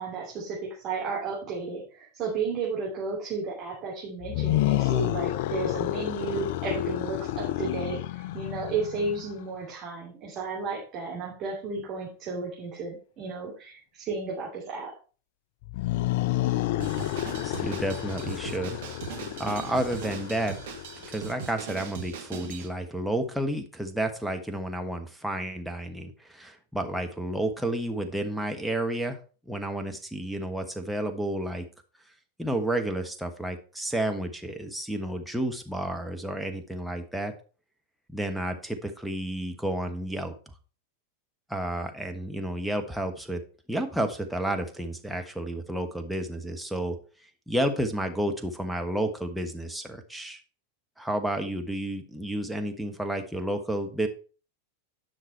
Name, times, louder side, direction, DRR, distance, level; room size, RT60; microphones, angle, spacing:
voice 1, 0.0-14.9, right 4 dB, 35° right, -5 dB, 3.1 m, -33 dB
sound 1, 4.2-9.4 15.6-21.3, left 16 dB, 50° left, 0.4 m, -30 dB
Drum kit, 16.8-22.7, right 8 dB, 55° right, 1.5 m, -40 dB
voice 2, 17.4-18.8 19.4-20.5 21.1-29.2 29.5-31.6 32.4-37.3 38.1-40.3 41.5-43.4 43.7-47.0 47.5-50.4 51.0-54.1, right 1 dB, ahead, 4 dB, 1.3 m, -31 dB
10.0 x 6.0 x 4.4 m, 0.38 s
figure-of-eight pair, 90°, 0 cm